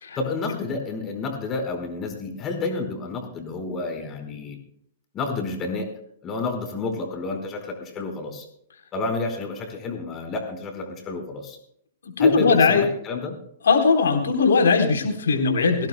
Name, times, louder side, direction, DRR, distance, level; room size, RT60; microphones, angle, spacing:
voice 1, 0.2-4.6 5.1-5.9 6.2-8.5 8.9-11.6 12.2-13.4, left 3 dB, 25° left, 4 dB, 4.5 m, -30 dB
voice 2, 12.0-12.8 13.6-15.9, left 4 dB, 65° left, 4 dB, 3.7 m, -19 dB
23.0 x 17.0 x 2.2 m, 0.70 s
figure-of-eight pair, 105°, 0 cm